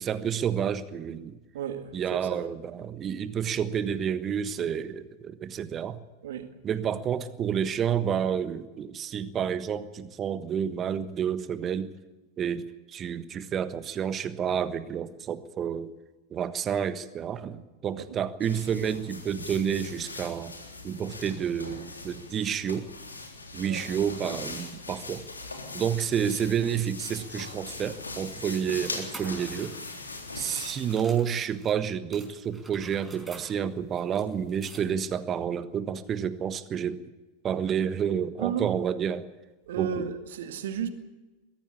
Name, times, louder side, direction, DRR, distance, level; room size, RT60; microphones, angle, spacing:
voice 1, 0.0-1.4 1.9-6.0 6.6-11.9 12.4-15.9 16.3-20.5 20.8-22.9 23.5-25.2 25.7-29.8 30.3-37.0 37.4-39.2 39.8-40.1, right 8 dB, 25° right, 1.3 m, -30 dB
voice 2, 1.5-2.5 6.2-6.5 18.0-18.1 23.6-23.9 38.4-38.7 39.7-40.9, right 8 dB, 60° right, 2.1 m, -33 dB
sound 1, 18.4-31.1, left 3 dB, 80° left, 3.6 m, -40 dB
sound 2, 28.7-31.8 32.1-35.2, right 2 dB, 5° right, 5.1 m, -50 dB
22.5 x 15.0 x 8.4 m
figure-of-eight pair, 90°, 0 cm